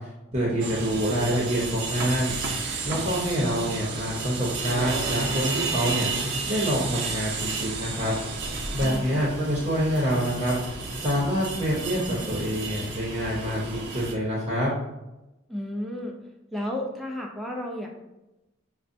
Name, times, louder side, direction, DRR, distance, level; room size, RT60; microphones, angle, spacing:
voice 1, 0.3-2.4 2.8-6.1 6.5-8.1 8.7-10.6 11.0-14.7, equal, 30° right, -5 dB, 0.7 m, -26 dB
sound 1, 0.6-14.1, right 3 dB, 70° right, 0.6 m, -32 dB
voice 2, 8.7-9.3 15.5-16.2 16.5-17.9, left 1 dB, ahead, -1 dB, 0.4 m, -33 dB
5.2 x 2.1 x 2.5 m, 0.96 s
head